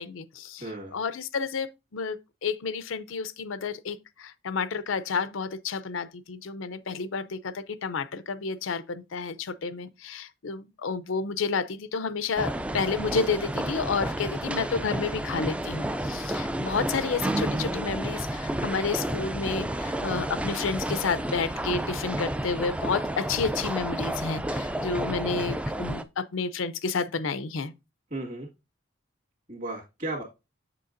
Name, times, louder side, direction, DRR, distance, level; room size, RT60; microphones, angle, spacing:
voice 1, 0.0-0.6 0.9-27.7, left 5 dB, 85° left, 0.6 m, -30 dB
voice 2, 0.6-0.9 28.1-28.5 29.5-30.2, right 2 dB, 40° right, 1.9 m, -34 dB
sound 1, 12.4-26.0, right 1 dB, 5° right, 0.3 m, -31 dB
7.2 x 6.7 x 2.5 m
head